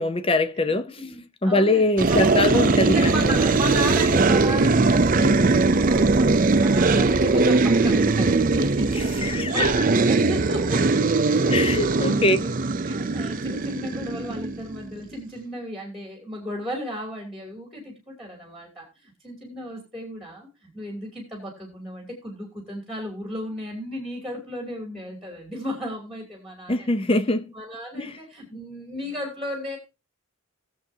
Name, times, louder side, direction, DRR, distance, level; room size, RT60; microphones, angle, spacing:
voice 1, 0.0-1.0 1.4-3.4 9.2-9.8 11.5-12.4 26.7-27.5 28.0-28.2, left 2 dB, 25° left, 0.6 m, -23 dB
voice 2, 0.6-10.9 11.3-12.6 12.8-26.9 27.5-29.8, equal, ahead, 2.8 m, -35 dB
sound 1, 2.0-14.9, right 3 dB, 35° right, 0.5 m, -20 dB
19.5 x 7.3 x 2.7 m
head